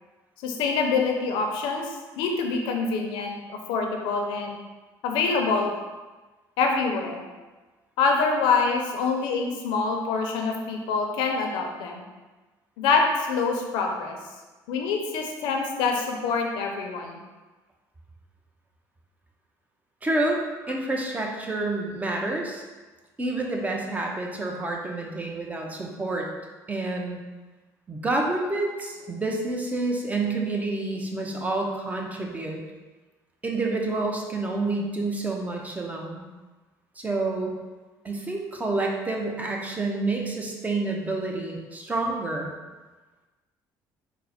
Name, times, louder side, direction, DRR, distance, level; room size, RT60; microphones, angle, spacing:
voice 1, 0.4-4.6 5.0-5.8 6.6-7.2 8.0-12.1 12.8-14.2 14.7-17.2 30.2-30.3, left 4 dB, 85° left, 2 dB, 0.6 m, -25 dB
voice 2, 20.0-20.4 20.7-22.6 23.2-26.3 26.7-27.2 27.9-32.6 33.4-36.3 37.0-37.6 38.0-42.5, right 2 dB, 20° right, 0 dB, 0.7 m, -28 dB
4.0 x 2.1 x 4.2 m, 1.2 s
supercardioid pair, 90°, 8 cm